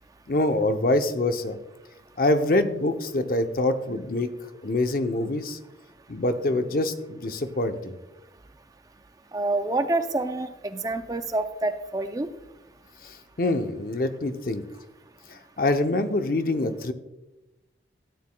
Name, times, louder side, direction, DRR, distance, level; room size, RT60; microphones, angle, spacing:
voice 1, 0.3-1.6 2.2-4.3 4.6-5.6 6.1-8.0 13.0-14.6 15.3-16.9, left 2 dB, 50° left, 8 dB, 0.7 m, -25 dB
voice 2, 9.3-12.3, right 2 dB, 20° right, 9 dB, 0.4 m, -27 dB
13.5 x 9.4 x 2.2 m, 0.98 s
head